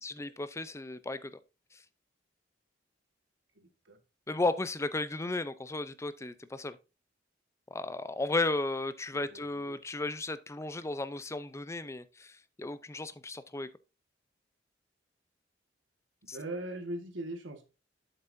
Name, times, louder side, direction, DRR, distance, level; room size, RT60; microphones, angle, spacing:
voice 1, 0.0-1.4 1.7-1.8 4.3-6.8 7.7-13.7 16.3-16.4, left 2 dB, 15° left, 0.5 m, -34 dB
voice 2, 3.5-4.0 9.1-9.8 16.3-17.6, right 1 dB, 85° right, 1.6 m, -41 dB
8.0 x 7.1 x 2.6 m
head